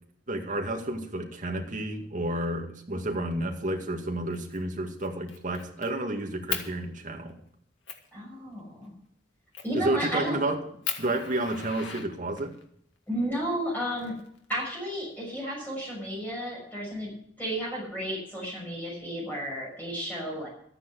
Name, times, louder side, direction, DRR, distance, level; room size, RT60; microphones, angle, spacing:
voice 1, 0.3-7.4 9.7-10.6 11.0-12.6, right 1 dB, 45° right, 3 dB, 2.1 m, -31 dB
Fire, 4.3-4.6 5.0-5.9 6.5-6.7 7.3-7.4 7.9-8.1 9.5-9.8 10.3-10.4 10.8-12.6 13.7-14.6, left 8 dB, 90° left, 2.0 m, -36 dB
voice 2, 8.1-8.9 9.6-10.4 13.1-14.2 14.5-17.1 17.4-20.5, equal, 10° left, -4 dB, 6.0 m, -32 dB
13.5 x 9.3 x 6.1 m, 0.68 s
head